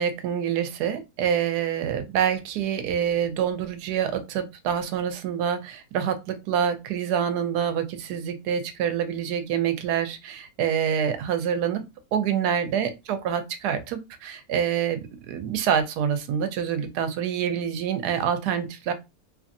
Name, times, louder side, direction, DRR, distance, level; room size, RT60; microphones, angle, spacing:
voice 1, 0.0-11.8 12.1-18.9, right 8 dB, 85° right, 9 dB, 1.1 m, -26 dB
2.8 x 2.6 x 2.4 m, 0.24 s
omnidirectional pair, 1.7 m